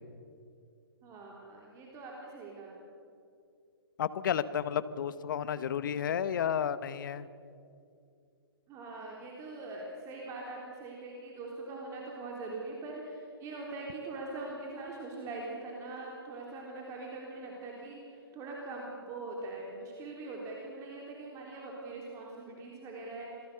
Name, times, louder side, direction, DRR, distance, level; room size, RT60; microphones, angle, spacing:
voice 1, 1.0-2.8 8.7-23.3, right 2 dB, 25° right, -2 dB, 3.6 m, -42 dB
voice 2, 4.0-7.3, left 8 dB, 50° left, 15 dB, 1.1 m, -32 dB
27.0 x 18.5 x 6.9 m, 2.4 s
figure-of-eight pair, 125°, 13 cm